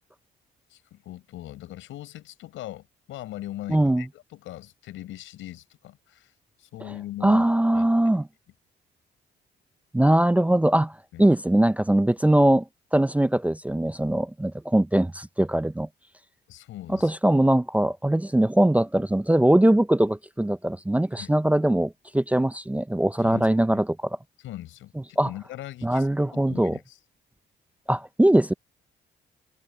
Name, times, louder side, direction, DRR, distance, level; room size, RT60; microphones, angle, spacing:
voice 1, 0.7-6.3 6.6-7.5 7.7-7.9 11.1-11.3 16.5-17.1 21.2-21.4 23.2-23.8 24.4-27.0, left 14 dB, 90° left, 5.2 m, -40 dB
voice 2, 3.7-4.0 7.2-8.3 9.9-10.9 11.2-12.6 12.9-15.9 17.0-24.2 25.2-25.3 25.8-26.8 27.9-28.5, right 1 dB, 5° right, 0.5 m, -21 dB
cardioid pair, 90°, 20 cm